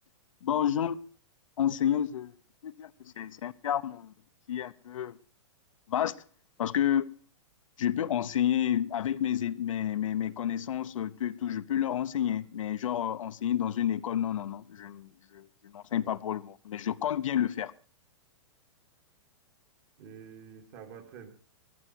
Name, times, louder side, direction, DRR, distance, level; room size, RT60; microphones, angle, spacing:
voice 1, 0.4-1.0 1.6-2.3 2.6-2.9 3.2-4.1 4.5-5.2 5.9-6.1 6.6-7.1 7.8-15.5 15.7-17.7, left 10 dB, 90° left, 0.8 m, -30 dB
voice 2, 20.0-21.3, right 7 dB, 40° right, 2.4 m, -48 dB
14.0 x 14.0 x 4.4 m
hypercardioid pair, 160°, 16 cm